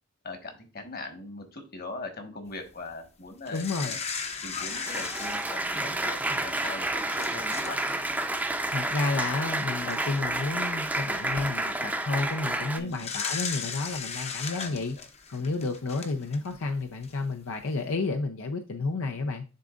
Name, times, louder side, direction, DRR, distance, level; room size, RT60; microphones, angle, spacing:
voice 1, 0.2-4.0 4.4-7.8 12.8-13.0 14.5-15.1, left 3 dB, 50° left, 5 dB, 1.4 m, -41 dB
voice 2, 3.5-4.0 8.7-15.0 15.3-19.4, left 3 dB, 80° left, 5 dB, 0.6 m, -31 dB
sound 1, 3.5-6.1 6.7-6.8 7.1-7.8 8.1-8.3 9.4-9.5 9.9-10.4 11.1-11.4 12.9-16.6 17.0-17.1, left 5 dB, 30° left, 0.7 m, -36 dB
Applause, 4.3-12.8, right 2 dB, 10° right, 0.6 m, -30 dB
10.5 x 3.8 x 2.4 m, 0.32 s
head